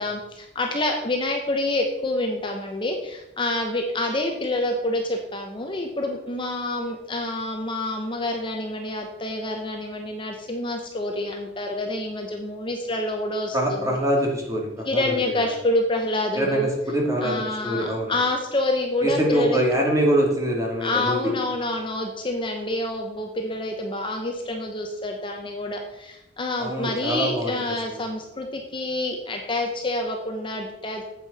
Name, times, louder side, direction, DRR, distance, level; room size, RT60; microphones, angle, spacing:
voice 1, 0.0-14.0 14.9-16.7 17.2-19.6 20.8-31.0, left 1 dB, 25° left, 2 dB, 0.9 m, -27 dB
voice 2, 13.5-15.0 16.3-18.1 19.0-21.3 26.6-27.5 27.9-28.0, right 1 dB, 15° right, -1 dB, 2.2 m, -24 dB
8.9 x 8.1 x 4.1 m, 0.90 s
head